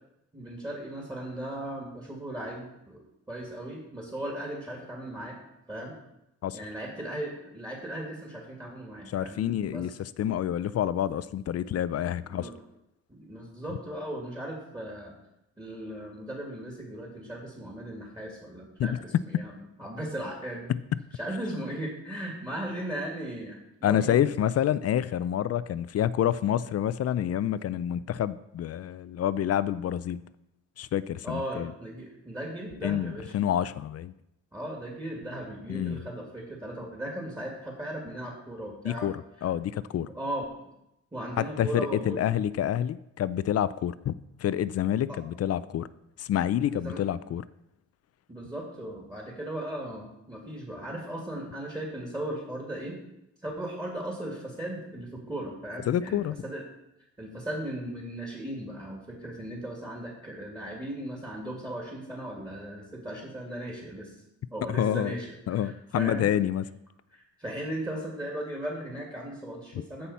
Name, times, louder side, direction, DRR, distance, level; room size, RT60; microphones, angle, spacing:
voice 1, 0.3-5.4 5.7-6.0 6.5-9.9 12.2-12.5 13.1-15.1 15.6-19.5 19.8-20.7 21.1-24.3 31.2-33.3 34.5-39.1 40.1-40.5 41.1-42.3 45.1-45.2 46.7-47.0 48.3-53.0 53.4-56.6 57.2-64.2 64.5-66.3 67.1-70.1, right 1 dB, 15° right, -2 dB, 2.3 m, -37 dB
voice 2, 9.1-12.5 18.8-19.0 23.8-30.2 30.8-31.7 32.8-34.1 35.7-36.0 38.8-40.1 41.4-44.1 44.4-45.9 46.2-47.4 55.9-56.4 64.7-65.2 65.5-66.7, left 10 dB, 55° left, 17 dB, 0.4 m, -28 dB
14.0 x 5.7 x 4.2 m, 0.85 s
cardioid pair, 115°, 29 cm